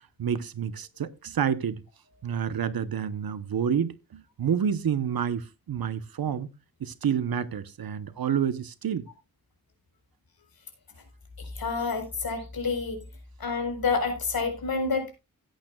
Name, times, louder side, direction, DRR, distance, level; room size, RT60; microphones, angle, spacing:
voice 1, 0.2-1.8 2.2-6.5 6.8-9.1, right 8 dB, 75° right, 1.0 m, -29 dB
voice 2, 11.5-13.0 13.4-15.2, left 4 dB, 75° left, 4.5 m, -28 dB
17.0 x 8.9 x 2.3 m
wide cardioid pair, 130°, 36 cm